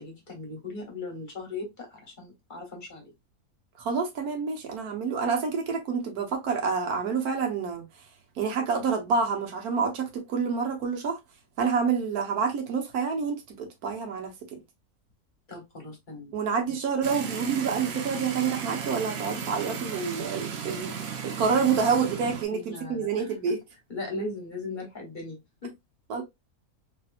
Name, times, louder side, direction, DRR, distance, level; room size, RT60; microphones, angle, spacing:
voice 1, 0.0-3.1 15.5-16.3 16.7-16.9 22.5-23.5 23.9-25.7, left 2 dB, 35° left, 1.2 m, -38 dB
voice 2, 3.8-7.8 8.4-11.2 11.6-14.6 16.3-23.6 26.1-26.2, right 5 dB, 75° right, 1.4 m, -28 dB
sound 1, 17.0-22.4, right 7 dB, 55° right, 0.8 m, -35 dB
3.2 x 2.8 x 2.4 m
omnidirectional pair, 1.6 m